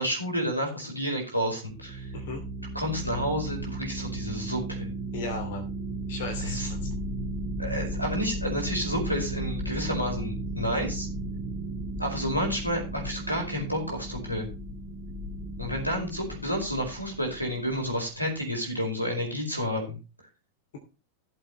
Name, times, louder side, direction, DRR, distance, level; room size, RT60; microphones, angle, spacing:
voice 1, 0.0-2.1 2.7-4.9 6.4-6.7 7.6-11.1 12.0-14.5 15.6-20.0, equal, 90° left, 1 dB, 4.8 m, -30 dB
sound 1, 1.7-18.0, right 1 dB, 20° right, 2.1 m, -35 dB
voice 2, 5.1-5.6 6.1-6.9, left 3 dB, 55° left, 3 dB, 2.7 m, -35 dB
17.0 x 7.6 x 3.2 m, 0.31 s
figure-of-eight pair, 90°, 0 cm